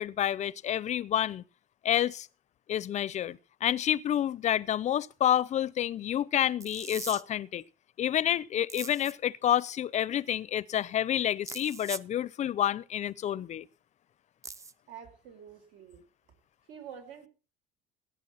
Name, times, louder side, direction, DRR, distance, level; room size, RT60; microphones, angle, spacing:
voice 1, 0.0-1.4 1.8-2.3 2.7-7.6 8.0-13.7, left 11 dB, 40° left, 0.6 m, -29 dB
sound 1, 6.6-7.2 8.7-9.1 11.5-12.1 14.4-14.7, right 3 dB, 15° right, 0.6 m, -40 dB
voice 2, 14.9-16.0 16.7-17.3, right 8 dB, 75° right, 5.0 m, -47 dB
17.0 x 9.2 x 5.9 m
cardioid pair, 125°, 19 cm